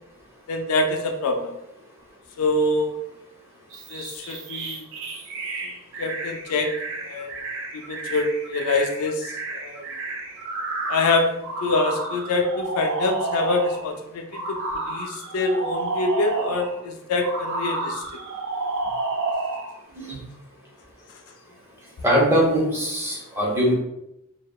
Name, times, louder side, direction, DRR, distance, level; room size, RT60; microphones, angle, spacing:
voice 1, 0.5-1.6 2.4-3.0 3.9-4.8 6.0-6.7 7.0-7.3 7.7-9.8 10.9-18.0, left 2 dB, 70° left, 5 dB, 0.3 m, -25 dB
sound 1, 3.7-13.9 14.3-16.8 17.2-19.8, right 3 dB, 60° right, 0.4 m, -31 dB
voice 2, 22.0-23.7, equal, 10° right, -5 dB, 0.7 m, -21 dB
2.8 x 2.1 x 2.2 m, 0.85 s
head